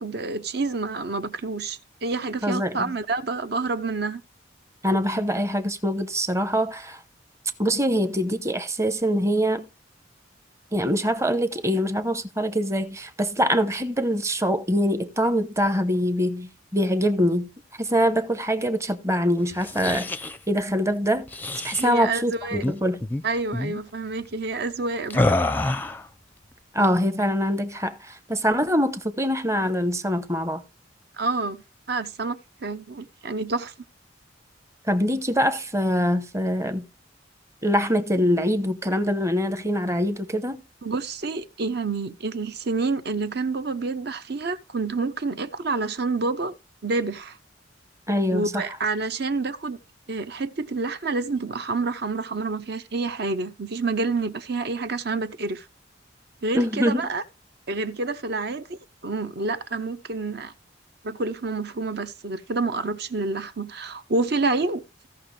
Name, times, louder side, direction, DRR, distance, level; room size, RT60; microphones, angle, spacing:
voice 1, 0.0-4.2 21.8-22.6 23.2-25.2 31.2-31.6 31.9-33.7 40.8-46.5 46.8-47.4 48.3-49.8 50.1-55.6 56.4-57.2 57.7-60.5 61.0-65.1, right 3 dB, 55° right, 0.8 m, -28 dB
voice 2, 2.4-2.9 4.8-7.0 7.6-9.7 10.7-17.5 17.8-20.1 20.5-21.3 21.6-23.0 26.7-30.6 34.9-36.9 37.6-40.6 48.1-48.6 56.5-57.0, equal, 15° right, 0.8 m, -24 dB
sound 1, 19.5-20.4 21.3-21.9 22.5-22.8 23.0-23.2 23.5-23.8 25.1-26.1, left 2 dB, 10° left, 0.5 m, -26 dB
16.5 x 5.9 x 3.3 m
head